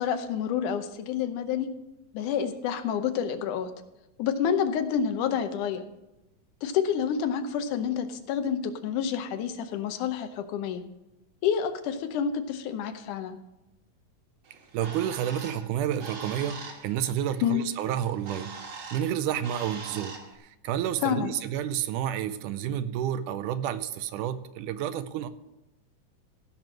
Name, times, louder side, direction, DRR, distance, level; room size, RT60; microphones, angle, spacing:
voice 1, 0.0-1.7 2.1-3.7 4.2-5.8 6.6-10.8 11.4-13.4 17.4-17.6 21.0-21.3, left 8 dB, 75° left, 9 dB, 2.3 m, -28 dB
Bird, 14.4-20.3, right 4 dB, 45° right, 1.9 m, -43 dB
voice 2, 14.7-18.6 18.9-25.3, right 10 dB, 80° right, 12 dB, 2.1 m, -30 dB
16.0 x 6.0 x 6.3 m, 0.94 s
omnidirectional pair, 3.7 m